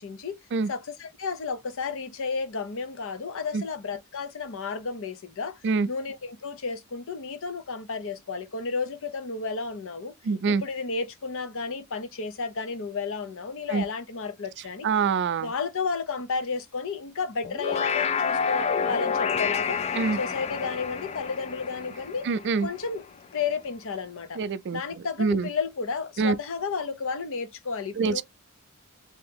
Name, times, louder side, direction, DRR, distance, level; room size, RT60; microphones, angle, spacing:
voice 1, 0.0-0.4 0.7-5.6 5.9-10.1 10.5-14.9 15.4-19.8 20.2-22.3 22.6-23.0 23.3-24.4 24.7-28.2, left 5 dB, 60° left, 0.7 m, -32 dB
voice 2, 10.2-10.6 13.7-13.8 14.8-15.5 19.9-20.2 22.2-22.7 24.4-25.5 26.2-26.3 28.0-28.2, right 4 dB, 55° right, 0.4 m, -25 dB
sound 1, 17.4-23.0, left 6 dB, 30° left, 0.3 m, -29 dB
3.5 x 2.8 x 3.4 m
head